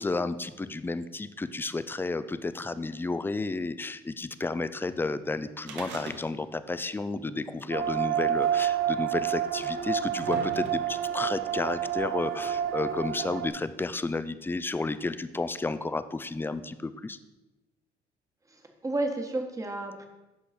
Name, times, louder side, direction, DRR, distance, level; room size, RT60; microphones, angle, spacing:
voice 1, 0.0-17.2, left 3 dB, 10° left, 13 dB, 0.4 m, -32 dB
sound 1, 5.6-6.6 6.9-7.0 8.0-8.1 9.0-9.1 9.8-11.1 12.0-12.1, right 5 dB, 80° right, 1.4 m, -41 dB
sound 2, 7.7-13.5, right 9 dB, 55° right, 0.8 m, -29 dB
voice 2, 18.5-20.1, right 2 dB, 20° right, 4 dB, 1.4 m, -32 dB
10.5 x 6.4 x 4.2 m, 1.0 s
cardioid pair, 110°, 18 cm